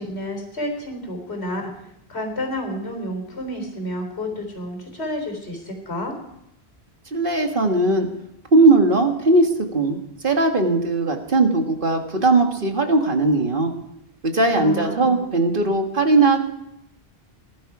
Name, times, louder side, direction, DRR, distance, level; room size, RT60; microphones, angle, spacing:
voice 1, 0.0-1.7 2.1-6.1 14.6-15.3, left 1 dB, 85° left, 3 dB, 3.8 m, -30 dB
voice 2, 7.1-8.1 8.5-10.0 10.2-13.7 14.2-16.4, right 2 dB, 55° right, 4 dB, 1.8 m, -18 dB
19.0 x 11.5 x 4.8 m, 0.79 s
omnidirectional pair, 1.1 m